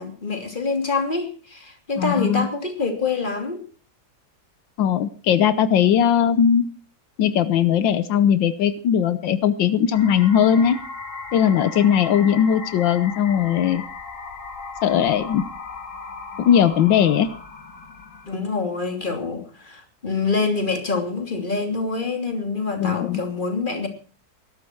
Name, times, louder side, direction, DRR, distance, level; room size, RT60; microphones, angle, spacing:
voice 1, 0.0-3.6 18.3-23.9, left 4 dB, 25° left, 4 dB, 3.0 m, -26 dB
voice 2, 2.0-2.5 4.8-6.6 7.2-10.8 11.3-13.8 14.8-15.4 16.4-17.3 22.8-23.2, left 9 dB, 85° left, 13 dB, 1.6 m, -19 dB
sound 1, 9.9-18.4, left 4 dB, 45° left, 2.3 m, -37 dB
20.5 x 12.0 x 4.5 m, 0.40 s
omnidirectional pair, 2.0 m